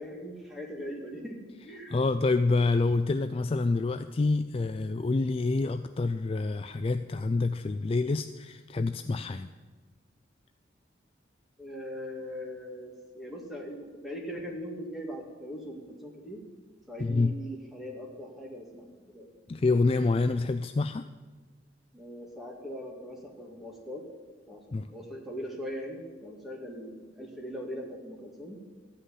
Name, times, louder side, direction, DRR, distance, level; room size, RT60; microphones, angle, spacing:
voice 1, 0.0-1.4 1.6-2.0 11.6-16.4 16.9-19.3 21.9-24.1 24.5-28.6, equal, ahead, -1 dB, 2.1 m, -40 dB
voice 2, 1.9-9.5 17.0-17.3 19.5-21.0 24.7-24.9, left 3 dB, 30° left, 9 dB, 0.3 m, -27 dB
14.5 x 5.7 x 9.9 m, 1.3 s
head